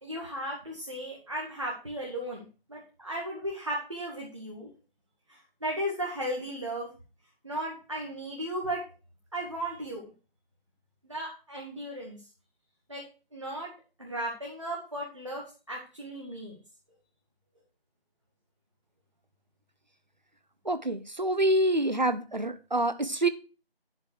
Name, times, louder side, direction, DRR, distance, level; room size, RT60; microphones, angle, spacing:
voice 1, 0.0-4.7 5.3-6.9 7.4-8.8 9.3-10.0 11.0-12.2 12.9-13.0 13.3-13.7 14.0-16.6, right 1 dB, 30° right, -3 dB, 2.1 m, -35 dB
voice 2, 20.6-23.3, right 1 dB, 45° right, 12 dB, 1.0 m, -26 dB
11.0 x 5.3 x 6.5 m, 0.34 s
figure-of-eight pair, 170°, 31 cm